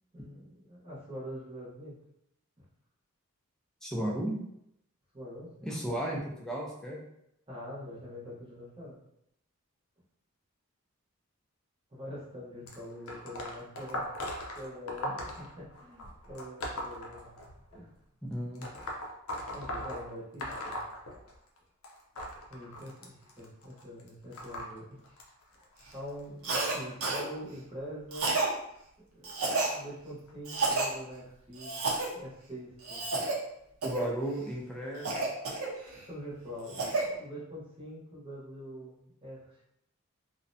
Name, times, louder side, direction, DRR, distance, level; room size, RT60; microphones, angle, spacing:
voice 1, 0.1-2.0 5.1-5.8 7.5-9.0 11.9-14.1 14.5-17.4 17.7-17.9 19.5-20.8 22.5-25.7 25.9-28.4 29.1-31.8 32.1-33.0 35.9-39.6, equal, 25° right, -7 dB, 0.8 m, -44 dB
voice 2, 3.8-4.4 5.6-7.0 18.2-18.7 33.8-35.4, right 1 dB, 5° left, -3 dB, 0.3 m, -34 dB
sound 1, 12.7-17.8 18.6-21.6 21.8-27.2 28.0-28.2 29.3-29.4 30.3-30.4 31.1-31.2, left 1 dB, 75° left, 0.5 m, -40 dB
Cough, 26.4-26.8 27.0-27.2 28.1-28.5 29.2-29.7 30.5-30.9 31.6-32.1 32.8-33.4 33.8-34.1 35.0-36.0 36.5-37.1, right 3 dB, 75° right, 0.5 m, -30 dB
2.5 x 2.1 x 2.6 m, 0.77 s
head